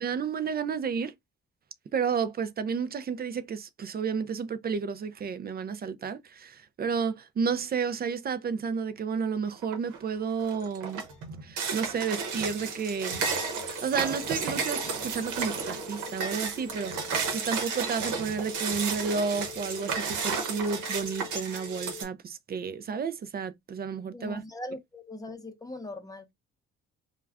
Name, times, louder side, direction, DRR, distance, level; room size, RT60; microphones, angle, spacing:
voice 1, 0.0-1.1 1.9-11.0 11.4-13.2 13.6-24.4, right 6 dB, 30° right, 0.4 m, -31 dB
sound 1, 9.6-10.0 10.4-22.0, right 5 dB, 80° right, 0.9 m, -33 dB
sound 2, 12.0-22.0, left 12 dB, 65° left, 0.5 m, -46 dB
voice 2, 24.1-26.3, left 1 dB, 10° left, 0.7 m, -40 dB
2.3 x 2.2 x 3.3 m
cardioid pair, 90°, 30 cm